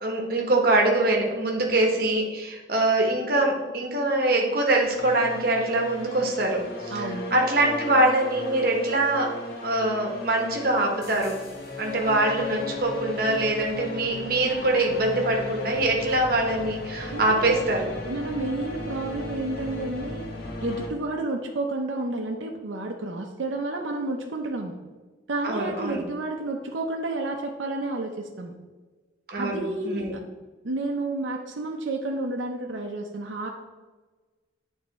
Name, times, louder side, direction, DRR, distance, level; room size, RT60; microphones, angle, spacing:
voice 1, 0.0-9.3 9.6-11.4 11.8-17.9 25.4-26.0 29.3-30.1, right 2 dB, 50° right, 1 dB, 1.1 m, -24 dB
sound 1, 5.0-20.9, left 2 dB, 50° left, 1.1 m, -36 dB
voice 2, 6.9-7.3 17.1-17.6 18.1-20.3 20.6-24.8 25.3-28.5 29.3-30.2 30.6-33.5, right 2 dB, 75° right, 1 dB, 0.6 m, -31 dB
8.7 x 3.5 x 4.1 m, 1.3 s
head